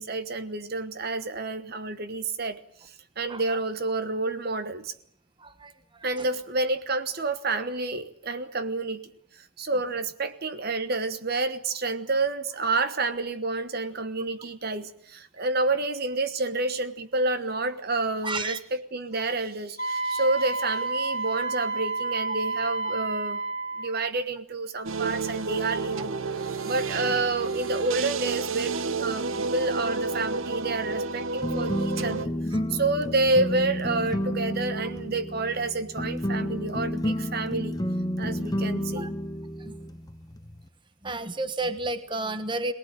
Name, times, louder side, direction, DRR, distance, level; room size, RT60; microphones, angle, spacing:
voice 1, 0.0-4.9 6.0-9.0 9.4-23.4 23.8-32.3 32.7-37.8 38.2-39.1, right 3 dB, 45° right, 11 dB, 1.3 m, -29 dB
voice 2, 5.4-6.3 15.4-15.5 18.2-18.6 21.4-21.5 26.0-26.1 32.5-32.6 39.0-39.1 39.6-39.7 41.0-42.7, right 2 dB, 20° right, 11 dB, 1.3 m, -32 dB
Wind instrument woodwind instrument, 19.8-23.9, right 3 dB, 35° left, 2.3 m, -30 dB
sound 1, 24.9-32.3, right 4 dB, 70° right, 0.9 m, -30 dB
sound 2, 31.4-40.7, equal, 20° left, 0.9 m, -31 dB
23.5 x 18.5 x 8.9 m, 0.67 s
head